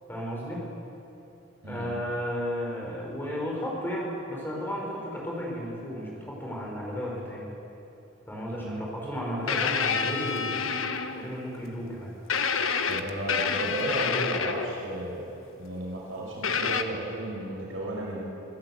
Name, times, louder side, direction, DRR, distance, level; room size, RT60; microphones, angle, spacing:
voice 1, 0.1-0.7 1.6-7.5 8.3-12.1, equal, 10° left, -3 dB, 5.7 m, -34 dB
sound 1, 9.5-11.4 12.3-14.9 16.4-16.8, left 6 dB, 85° left, 1.3 m, -28 dB
voice 2, 12.9-15.3 15.6-18.2, right 1 dB, 80° right, -3 dB, 5.4 m, -34 dB
27.0 x 16.0 x 8.1 m, 2.9 s
head